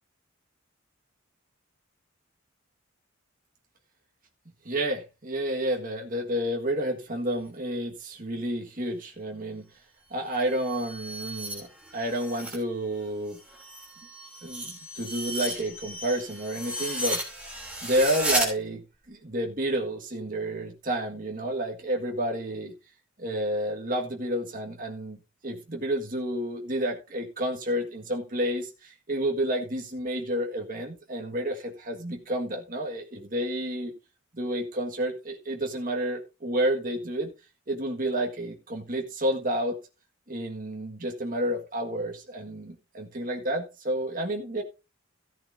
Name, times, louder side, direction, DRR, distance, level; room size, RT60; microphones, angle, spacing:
voice 1, 4.6-9.7 10.1-13.4 14.4-17.2 17.8-22.7 23.2-25.2 25.4-33.9 34.3-37.3 37.7-39.8 40.3-44.6, right 1 dB, 40° right, 1 dB, 1.7 m, -30 dB
sound 1, 10.2-12.6 13.0-18.5, right 1 dB, 5° right, 3.2 m, -34 dB
14.5 x 10.5 x 2.7 m, 0.28 s
head